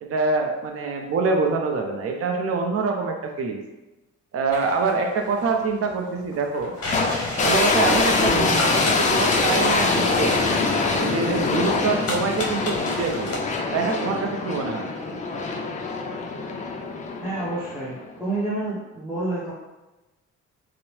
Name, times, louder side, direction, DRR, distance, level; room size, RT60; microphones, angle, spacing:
voice 1, 0.0-3.6 4.3-6.7 7.4-10.4 11.0-13.4 13.7-14.9, right 4 dB, 50° right, 3 dB, 0.5 m, -25 dB
sound 1, 4.5-13.4, left 2 dB, 50° left, 0.7 m, -33 dB
sound 2, 6.9-18.1, left 3 dB, 25° left, 0.3 m, -24 dB
voice 2, 17.2-19.5, right 2 dB, 5° right, -10 dB, 0.7 m, -29 dB
2.7 x 2.0 x 3.0 m, 1.1 s
cardioid pair, 90°, 30 cm